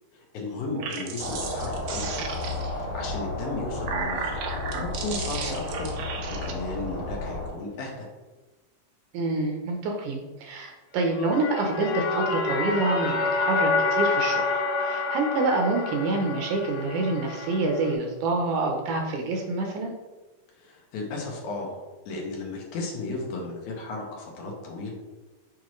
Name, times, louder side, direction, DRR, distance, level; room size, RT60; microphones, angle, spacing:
voice 1, 0.1-2.2 2.6-8.1 20.6-21.8 22.1-24.9, left 3 dB, 70° left, -1 dB, 2.2 m, -35 dB
sound 1, 0.6-2.9 3.5-6.5, right 5 dB, 90° right, 2.6 m, -34 dB
sound 2, 1.2-7.5, left 2 dB, 55° left, 2.8 m, -33 dB
voice 2, 9.1-19.9, right 3 dB, 75° right, 1 dB, 2.0 m, -27 dB
sound 3, 11.1-17.9, left 3 dB, 85° left, 2.4 m, -28 dB
7.3 x 4.4 x 3.1 m, 1.2 s
omnidirectional pair, 3.9 m